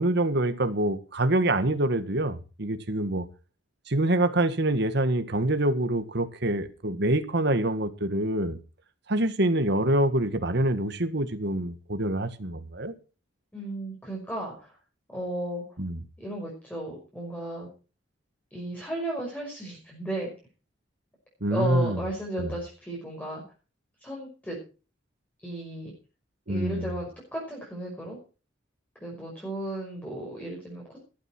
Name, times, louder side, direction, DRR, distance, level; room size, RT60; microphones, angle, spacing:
voice 1, 0.0-3.2 3.9-8.6 9.1-12.9 15.8-16.0 21.4-22.0 22.4-22.5 26.5-26.8, right 1 dB, 60° right, 1.7 m, -26 dB
voice 2, 13.5-14.8 15.1-15.6 16.2-17.7 18.5-20.3 21.5-23.4 24.0-24.6 25.4-25.9 26.5-28.2 29.0-31.1, right 1 dB, 10° left, 5.7 m, -34 dB
16.0 x 12.0 x 4.5 m
head